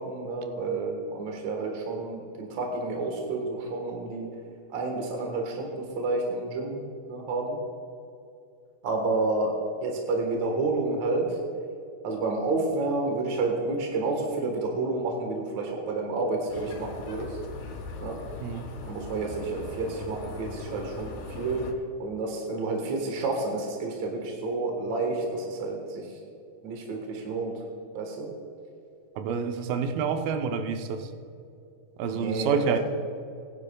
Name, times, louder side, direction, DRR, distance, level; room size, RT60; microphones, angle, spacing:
voice 1, 0.0-4.3 4.7-7.6 8.8-9.5 9.8-11.4 12.0-17.4 18.0-18.2 18.9-21.6 22.0-26.1 26.6-27.5 27.9-28.3 32.1-32.8, right 3 dB, 55° right, 1 dB, 2.2 m, -30 dB
sound 1, 16.5-21.7, left 3 dB, 65° left, 3.0 m, -40 dB
voice 2, 29.2-31.1 32.0-32.8, right 6 dB, 75° right, 6 dB, 2.3 m, -28 dB
21.0 x 10.5 x 2.3 m, 2.6 s
omnidirectional pair, 4.6 m